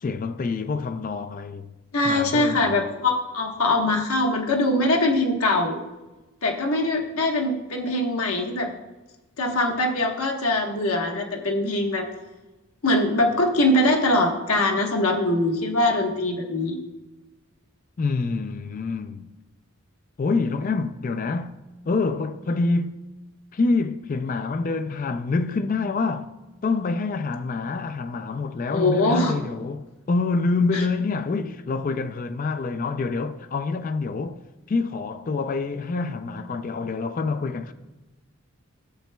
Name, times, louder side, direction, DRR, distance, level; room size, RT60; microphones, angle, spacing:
voice 1, 0.0-1.7 2.0-2.8 18.0-19.3 20.2-21.6 21.9-23.1 23.5-26.4 26.6-37.7, left 3 dB, 35° left, 0.3 m, -26 dB
voice 2, 1.9-5.8 6.4-8.7 9.4-12.1 12.8-16.8 28.7-29.3 30.7-30.8, left 1 dB, 75° left, 1.2 m, -22 dB
13.5 x 7.5 x 2.2 m
head